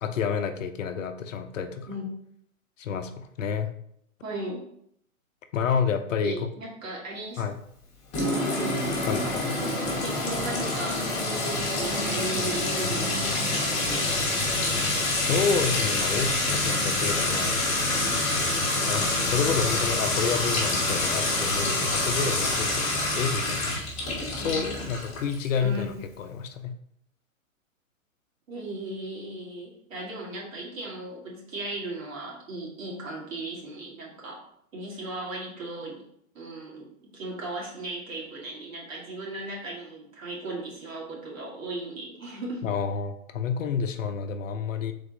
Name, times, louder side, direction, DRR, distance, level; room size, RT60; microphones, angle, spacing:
voice 1, 0.0-1.9 2.8-3.7 5.5-6.5 7.4-7.6 9.1-9.5 15.2-17.6 18.9-23.8 24.3-26.7 42.6-44.9, left 6 dB, 65° left, 8 dB, 0.7 m, -29 dB
voice 2, 4.2-4.7 6.2-7.4 8.5-8.8 9.2-11.0 11.5-14.1 24.4-24.9 25.6-26.0 28.5-34.4 34.7-36.0 36.3-42.7, right 2 dB, 70° right, -3 dB, 1.7 m, -37 dB
Sink (filling or washing) / Trickle dribble / Fill (with liquid), 8.1-25.6, left 2 dB, 15° left, 1.1 m, -26 dB
3.8 x 3.5 x 3.8 m, 0.71 s
hypercardioid pair, 145°, 42 cm